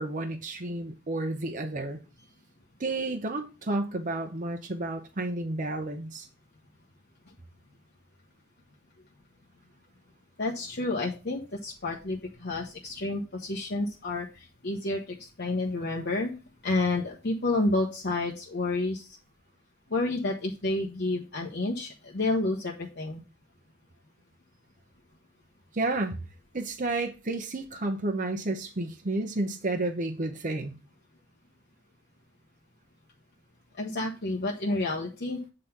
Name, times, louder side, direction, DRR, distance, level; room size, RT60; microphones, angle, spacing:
voice 1, 0.0-2.0 2.8-6.3 25.7-26.2 26.5-30.8, right 2 dB, 40° right, 0.8 m, -31 dB
voice 2, 10.4-16.3 16.6-19.1 19.9-23.2 33.8-35.4, left 2 dB, 55° left, 1.0 m, -30 dB
8.1 x 3.9 x 5.8 m
head